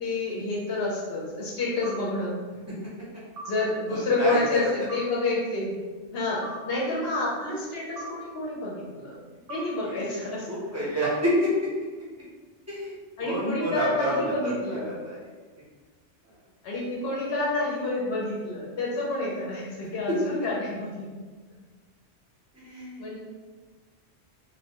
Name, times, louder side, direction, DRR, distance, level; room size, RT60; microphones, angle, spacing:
voice 1, 0.0-2.4 3.5-5.7 6.1-9.2 9.5-10.5 10.8-10.9 13.2-14.9 16.6-21.1 23.0-23.2, left 2 dB, 65° left, -4 dB, 0.7 m, -29 dB
sound 1, 1.8-2.0 3.4-3.5 4.9-5.1 6.4-6.6 8.0-8.1 9.5-9.7 11.0-11.2, right 3 dB, 60° right, 0.6 m, -38 dB
voice 2, 3.9-4.7 9.8-10.1 10.5-11.5 12.7-12.9 13.2-15.2 16.2-16.4 20.1-20.2 22.5-23.1, equal, 20° right, -9 dB, 0.5 m, -29 dB
2.2 x 2.1 x 2.8 m, 1.4 s
omnidirectional pair, 1.2 m